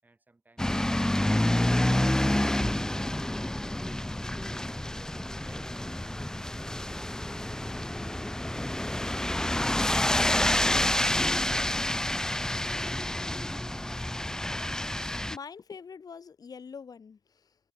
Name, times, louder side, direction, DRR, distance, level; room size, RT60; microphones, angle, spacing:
voice 1, 0.0-8.7, right 2 dB, 20° right, 7.2 m, -60 dB
sound 1, 0.6-15.4, left 1 dB, 5° left, 0.8 m, -28 dB
voice 2, 15.3-17.6, left 6 dB, 50° left, 1.5 m, -44 dB
wide cardioid pair, 155°, 9 cm